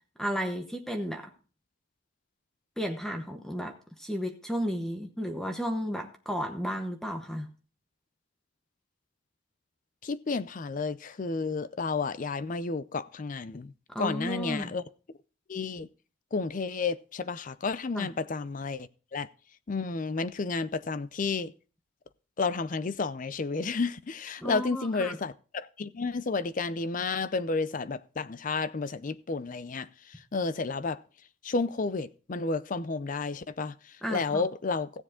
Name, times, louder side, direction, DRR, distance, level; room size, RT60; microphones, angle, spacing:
voice 1, 0.2-1.3 2.8-7.5 13.9-14.7 17.9-18.1 24.4-25.2 34.0-34.4, equal, ahead, 0.9 m, -33 dB
voice 2, 10.0-13.7 14.0-14.8 15.5-15.9 16.3-19.3 19.7-21.5 22.4-31.0 31.4-34.9, left 4 dB, 40° left, 0.4 m, -31 dB
16.0 x 7.3 x 3.7 m
head